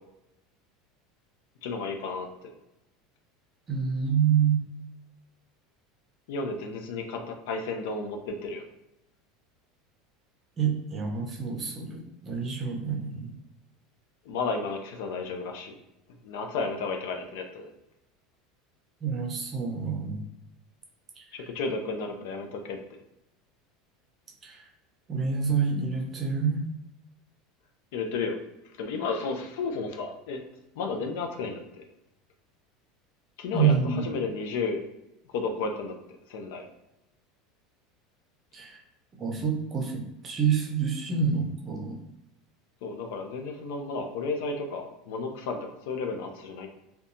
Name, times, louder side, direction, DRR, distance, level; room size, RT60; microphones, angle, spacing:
voice 1, 1.6-2.5 6.3-8.6 14.2-15.7 16.2-17.7 21.3-22.8 27.9-28.4 28.8-30.4 30.8-31.8 33.4-34.8 35.3-36.0 36.3-36.6 42.8-46.7, left 4 dB, 75° left, 4 dB, 0.4 m, -32 dB
voice 2, 3.7-4.6 10.6-13.3 19.0-20.2 21.2-21.5 24.4-24.7 25.1-26.7 33.5-34.0 38.5-38.8 39.2-42.0, right 6 dB, 25° right, 1 dB, 0.5 m, -27 dB
2.6 x 2.2 x 2.6 m, 0.89 s
supercardioid pair, 135°, 0 cm